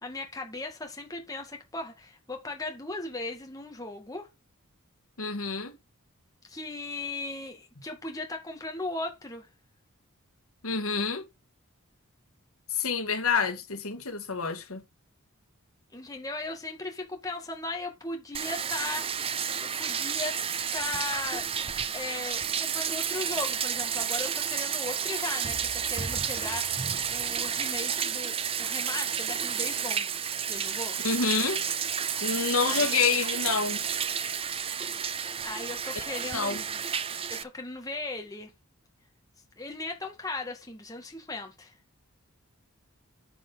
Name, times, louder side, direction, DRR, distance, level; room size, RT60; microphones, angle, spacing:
voice 1, 0.0-4.3 6.5-9.5 15.9-20.4 20.7-21.5 21.9-30.1 30.5-31.0 32.7-32.9 35.4-36.8 37.3-38.5 39.6-41.7, left 2 dB, 15° left, 2.0 m, -37 dB
voice 2, 5.2-5.8 10.6-11.3 12.7-14.8 31.0-31.7 32.2-33.8 36.3-36.6, left 5 dB, 75° left, 1.9 m, -28 dB
Bathtub (filling or washing), 18.3-37.4, right 7 dB, 25° right, 0.5 m, -31 dB
10.0 x 5.5 x 4.1 m
head